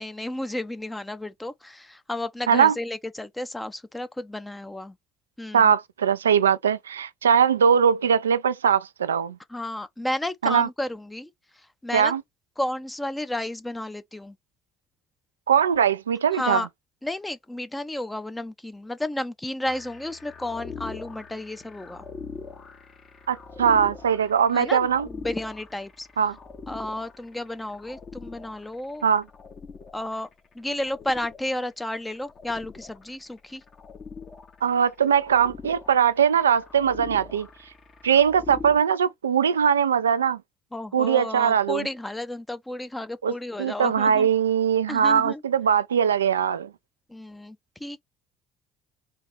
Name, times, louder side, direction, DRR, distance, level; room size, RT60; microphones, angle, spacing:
voice 1, 0.0-5.0 5.4-5.7 9.5-11.3 11.5-12.1 12.6-14.4 16.3-16.7 17.0-22.0 24.5-26.1 26.7-29.0 29.9-30.3 30.5-33.6 40.7-44.3 44.9-45.4 47.1-48.0, left 1 dB, 10° left, 0.6 m, -32 dB
voice 2, 5.5-9.4 10.4-10.7 11.9-12.2 15.5-16.6 23.3-25.1 26.2-26.3 29.0-29.2 34.6-37.5 38.0-40.4 40.9-41.9 43.2-43.3 43.6-46.7, right 7 dB, 85° right, 0.3 m, -21 dB
sound 1, 19.6-38.8, left 4 dB, 40° left, 1.2 m, -43 dB
4.2 x 2.8 x 3.2 m
figure-of-eight pair, 55°, 0 cm